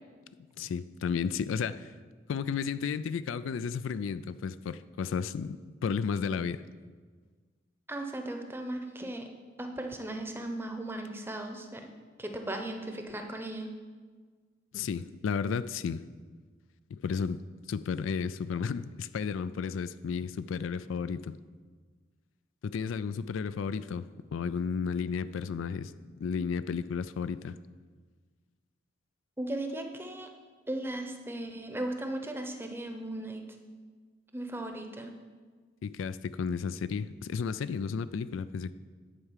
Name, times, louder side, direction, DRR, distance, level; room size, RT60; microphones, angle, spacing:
voice 1, 0.6-1.9 2.3-6.6 14.7-16.0 16.9-17.4 17.7-21.4 22.6-25.9 26.2-27.6 35.8-38.7, left 6 dB, 85° left, 14 dB, 0.3 m, -33 dB
voice 2, 7.9-9.3 9.6-11.9 12.2-13.7 29.4-30.3 30.7-33.4 34.3-35.1, right 1 dB, 10° right, 4 dB, 0.7 m, -37 dB
9.9 x 4.7 x 7.3 m, 1.5 s
head